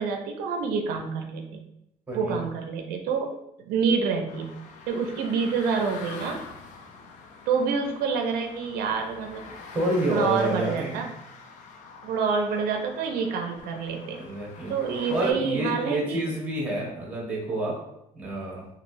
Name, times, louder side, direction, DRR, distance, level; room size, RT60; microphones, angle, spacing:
voice 1, 0.0-1.6 2.1-3.4 3.6-4.5 4.9-6.4 7.5-9.5 10.1-11.1 12.0-14.2 14.7-16.3, right 5 dB, 85° right, 4 dB, 0.5 m, -27 dB
voice 2, 2.1-2.4 9.7-11.0 14.1-14.7 15.1-17.8 18.1-18.6, right 1 dB, 10° right, -3 dB, 0.9 m, -28 dB
sound 1, 4.3-15.3, left 4 dB, 55° left, 0.4 m, -45 dB
3.0 x 2.5 x 2.6 m, 0.83 s
cardioid pair, 160°, 15 cm